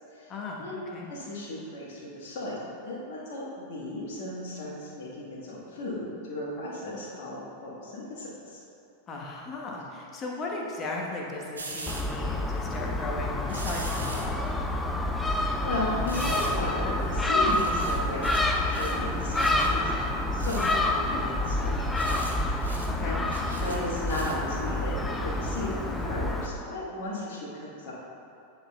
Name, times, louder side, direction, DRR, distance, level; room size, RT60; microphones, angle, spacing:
voice 1, 0.3-0.6 0.9-1.1 9.1-14.5 19.7-19.9 23.0-23.2, left 2 dB, 30° left, -1 dB, 1.1 m, -36 dB
voice 2, 1.1-8.6 15.2-19.8 20.3-22.1 23.0-23.2 23.5-27.9, left 1 dB, 50° left, -7 dB, 1.4 m, -35 dB
sound 1, 11.5-12.0 13.5-14.3 16.0-16.6 17.0-17.1 17.5-18.5 18.7-19.0 19.3-19.7 20.4-20.9 21.8-22.3 22.6-22.9 23.3-24.4 24.9-25.0, right 3 dB, 75° right, 0.7 m, -41 dB
Gull seagull, 11.9-26.5, left 1 dB, 10° left, 0.5 m, -28 dB
10.0 x 5.8 x 2.2 m, 2.7 s
figure-of-eight pair, 90°, 0 cm